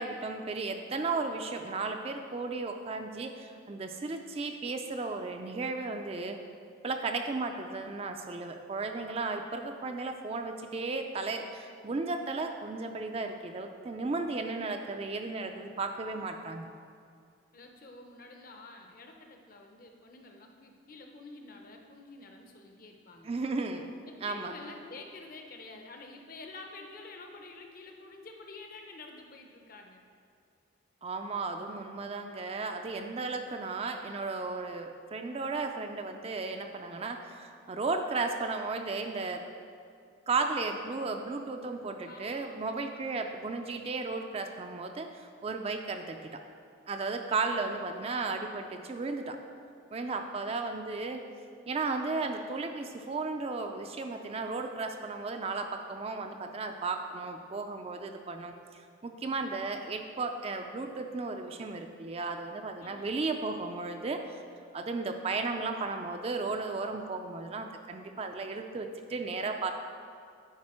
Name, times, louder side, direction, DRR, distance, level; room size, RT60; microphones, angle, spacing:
voice 1, 0.0-6.4 6.8-16.7 23.2-23.9 24.2-24.5 31.0-39.4 40.3-46.4 46.9-49.4 49.9-51.2 51.7-64.4 64.7-69.7, right 3 dB, 30° right, 5 dB, 0.3 m, -35 dB
voice 2, 17.5-23.3 24.1-30.0 42.0-42.7 50.0-50.6 62.8-63.2, left 3 dB, 45° left, 3 dB, 0.7 m, -49 dB
10.5 x 4.2 x 4.3 m, 2.3 s
head